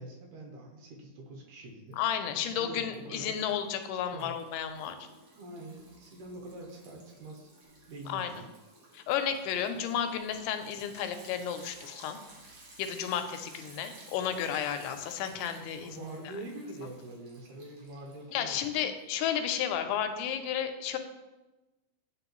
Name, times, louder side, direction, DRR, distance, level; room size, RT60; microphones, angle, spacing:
voice 1, 0.0-2.0 2.4-3.4 4.1-4.4 5.4-7.5 7.9-8.5 15.8-18.8, right 2 dB, 80° right, 1 dB, 2.3 m, -45 dB
voice 2, 1.9-5.0 8.1-8.3 8.9-12.2 12.8-16.1 18.3-21.0, left 9 dB, 85° left, 8 dB, 2.1 m, -32 dB
Liquid, 1.9-2.5 2.8-19.0, right 2 dB, 60° right, 1.4 m, -55 dB
9.2 x 3.7 x 3.0 m, 1.1 s
omnidirectional pair, 3.7 m